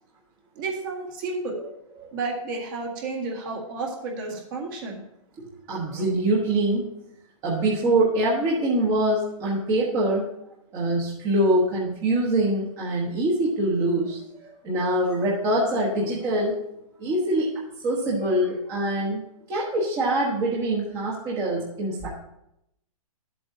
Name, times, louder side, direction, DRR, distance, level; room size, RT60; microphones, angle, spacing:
voice 1, 0.6-1.6 2.1-5.0 5.9-6.0, right 3 dB, 35° right, 0 dB, 1.8 m, -31 dB
voice 2, 5.4-6.9 7.4-10.2 10.7-16.6 17.0-17.5 17.8-19.2 19.5-22.2, right 1 dB, 20° right, -5 dB, 1.2 m, -24 dB
12.5 x 7.7 x 2.8 m, 0.80 s
hypercardioid pair, 160°, 18 cm